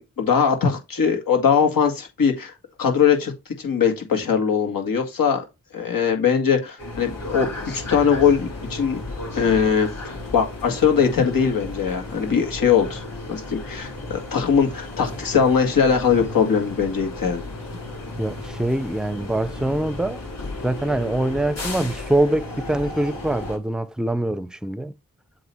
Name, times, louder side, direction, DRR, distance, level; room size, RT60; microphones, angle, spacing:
voice 1, 0.0-2.5 2.8-3.3 3.6-5.5 5.7-9.0 9.3-13.0 13.3-17.4, left 6 dB, 85° left, 2.1 m, -21 dB
sound 1, 6.8-23.6, left 2 dB, 50° left, 4.3 m, -34 dB
voice 2, 18.2-20.2 20.6-24.9, right 1 dB, ahead, 0.5 m, -24 dB
7.8 x 3.1 x 5.5 m
cardioid pair, 75°, 33 cm